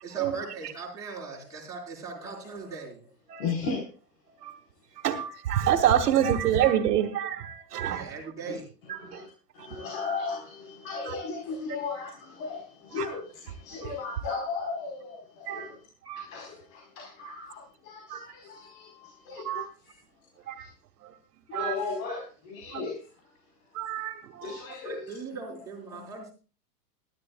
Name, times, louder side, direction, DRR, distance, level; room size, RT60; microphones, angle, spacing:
voice 1, 0.0-3.0 7.9-8.6 24.1-24.3 24.8-26.3, right 4 dB, 5° right, -5 dB, 4.8 m, -40 dB
voice 2, 2.1-2.7 3.4-3.9 6.2-6.3 8.4-8.6 8.8-15.9 16.2-20.0 20.6-20.7 21.5-23.1 24.4-25.5 25.9-26.1, left 4 dB, 55° left, 1 dB, 4.6 m, -36 dB
voice 3, 5.0-8.1 8.9-9.2 11.1-11.2 13.0-13.1 15.5-15.7 16.1-16.3 18.1-18.2 19.5-19.6 20.5-20.7 21.0-21.1 21.5-21.7 22.7-22.8 23.7-24.5, right 10 dB, 70° right, 1 dB, 2.2 m, -27 dB
21.5 x 12.5 x 2.4 m, 0.35 s
supercardioid pair, 155°, 48 cm